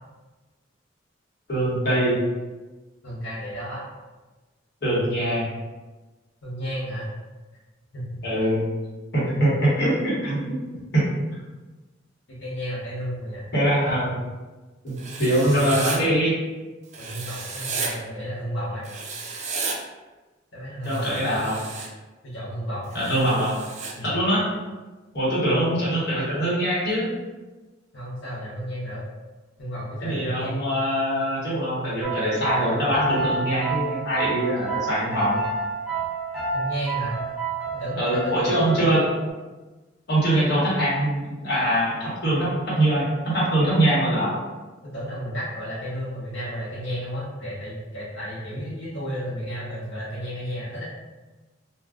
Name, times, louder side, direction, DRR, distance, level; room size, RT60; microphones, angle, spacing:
voice 1, 1.5-2.2 4.8-5.5 8.2-8.6 9.1-11.0 13.5-14.1 14.8-16.3 20.8-21.7 22.9-23.6 24.0-24.5 25.1-27.1 30.0-35.4 38.0-39.0 40.1-44.3, right 1 dB, 60° left, -8 dB, 1.1 m, -23 dB
voice 2, 3.0-3.9 6.4-7.1 7.9-8.5 9.3-9.5 12.3-13.4 17.0-18.9 20.5-21.4 22.2-22.9 23.9-24.1 25.4-25.7 27.9-29.0 29.6-30.6 36.5-37.2 37.7-39.0 44.9-50.8, equal, 80° left, -10 dB, 0.9 m, -33 dB
Writing, 15.0-16.0 16.9-17.9 18.8-19.8 20.8-21.9 22.9-23.9, right 4 dB, 40° right, 0.4 m, -33 dB
sound 1, 32.0-39.3, right 4 dB, 5° right, 0.9 m, -30 dB
2.4 x 2.3 x 3.5 m, 1.2 s
head